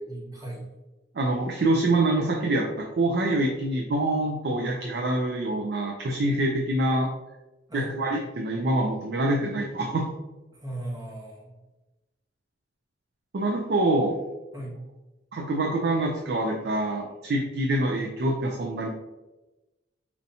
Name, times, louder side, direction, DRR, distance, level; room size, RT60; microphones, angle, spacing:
voice 1, 0.1-0.7 7.7-7.9 10.5-11.5 14.5-14.8, right 1 dB, 20° right, -4 dB, 0.9 m, -37 dB
voice 2, 1.2-7.1 7.7-10.1 13.3-14.2 15.3-18.9, right 1 dB, 60° right, 1 dB, 0.4 m, -25 dB
4.3 x 2.7 x 2.6 m, 1.1 s
head